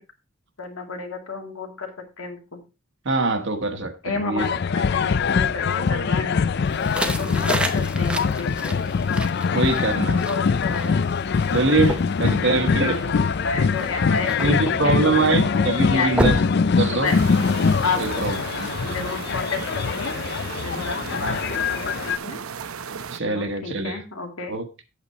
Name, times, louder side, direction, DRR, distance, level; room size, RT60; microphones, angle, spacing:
voice 1, 0.6-1.9 2.2-2.6 4.0-6.8 7.2-8.8 10.1-11.0 11.3-11.4 12.1-16.1 16.9-17.2 17.8-18.2 18.8-20.1 20.6-22.4 23.2-24.5, left 4 dB, 75° left, 2.3 m, -31 dB
voice 2, 3.0-4.5 9.5-10.2 11.5-13.0 14.4-17.1 17.9-18.7 21.1-21.4 22.0-22.2 22.9-24.0 24.5-24.6, right 3 dB, 55° right, 1.2 m, -24 dB
sound 1, 4.4-22.2, left 5 dB, 50° left, 0.4 m, -23 dB
sound 2, 6.7-17.4, right 1 dB, 5° right, 0.9 m, -32 dB
sound 3, 17.0-23.2, right 6 dB, 80° right, 0.7 m, -35 dB
8.5 x 8.3 x 4.1 m
head